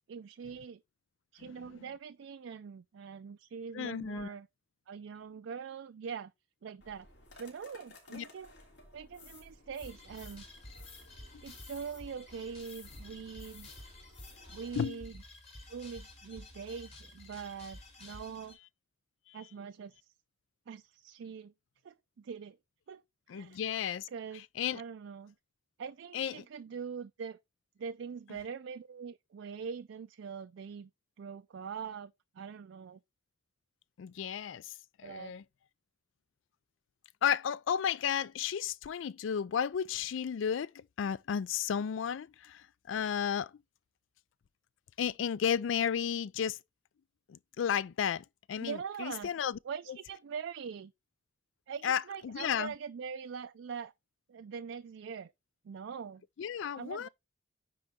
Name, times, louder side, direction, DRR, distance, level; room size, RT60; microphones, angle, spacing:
voice 1, 0.1-0.8 1.3-4.5 4.9-6.3 6.6-7.1 7.4-8.5 8.9-10.4 11.4-13.7 14.5-15.2 15.7-18.6 19.3-20.1 20.7-21.5 21.8-22.6 22.9-23.0 23.3-23.6 24.1-24.5 24.7-25.3 25.8-27.4 27.8-30.9 31.2-33.0 35.0-35.3 48.6-49.3 49.6-50.9 51.7-53.9 54.3-55.3 55.6-56.2 56.8-57.1, right 6 dB, 75° right, 0.4 m, -43 dB
voice 2, 3.7-4.3 8.1-8.2 14.8-15.0 19.3-19.4 23.3-24.1 24.6-24.8 26.1-26.4 34.0-34.7 35.0-35.4 37.2-43.5 45.0-46.6 47.3-49.6 51.8-52.7 56.4-57.1, left 8 dB, 85° left, 0.4 m, -33 dB
sound 1, 6.8-14.8, left 3 dB, 60° left, 3.1 m, -55 dB
sound 2, 9.8-18.5, left 1 dB, 35° left, 2.4 m, -51 dB
9.7 x 3.9 x 3.5 m
head